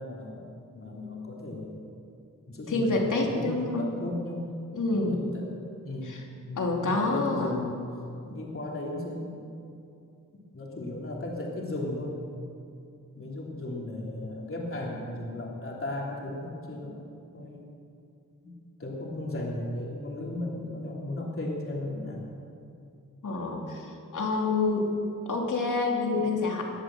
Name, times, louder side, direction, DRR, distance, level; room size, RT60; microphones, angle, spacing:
voice 1, 0.0-1.8 2.5-4.5 4.9-5.5 5.8-6.1 6.4-7.9 8.3-9.5 10.5-12.1 13.1-17.0 17.3-17.7 18.4-18.5 18.8-22.3, left 2 dB, 40° left, -3 dB, 3.2 m, -35 dB
voice 2, 2.7-3.9 4.7-5.2 6.0-6.2 6.6-7.6 23.2-24.9 25.3-26.6, left 3 dB, 70° left, 0 dB, 2.8 m, -27 dB
21.5 x 7.9 x 7.7 m, 2.5 s
cardioid pair, 70°, 32 cm